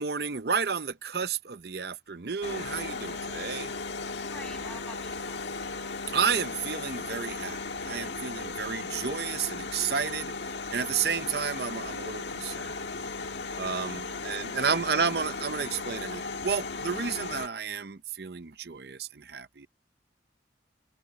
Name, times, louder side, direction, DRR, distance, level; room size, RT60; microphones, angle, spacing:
voice 1, 0.0-3.7 6.1-10.3 10.7-12.8 13.6-19.7, right 6 dB, 60° right, 0.7 m, -31 dB
sound 1, 2.4-17.5, left 3 dB, 70° left, 1.7 m, -36 dB
voice 2, 4.2-5.4 13.8-14.8, left 1 dB, 5° left, 6.6 m, -50 dB
open air
head